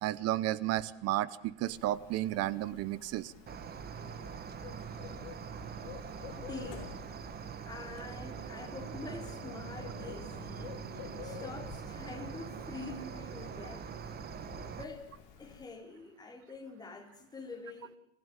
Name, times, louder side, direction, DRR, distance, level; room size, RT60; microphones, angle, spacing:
voice 1, 0.0-3.3, right 14 dB, 45° right, 19 dB, 0.9 m, -32 dB
sound 1, 0.9-14.7, left 7 dB, 40° left, 5.1 m, -58 dB
Bird, 1.6-15.6, left 12 dB, 65° left, 2.1 m, -51 dB
Cricket, 3.5-14.8, right 7 dB, 25° right, 1.4 m, -43 dB
voice 2, 6.3-7.0 7.7-10.8 11.2-13.9 14.7-15.1 15.4-18.0, left 3 dB, 10° left, 2 dB, 3.5 m, -46 dB
28.0 x 15.0 x 9.1 m, 0.79 s
supercardioid pair, 145°, 35 cm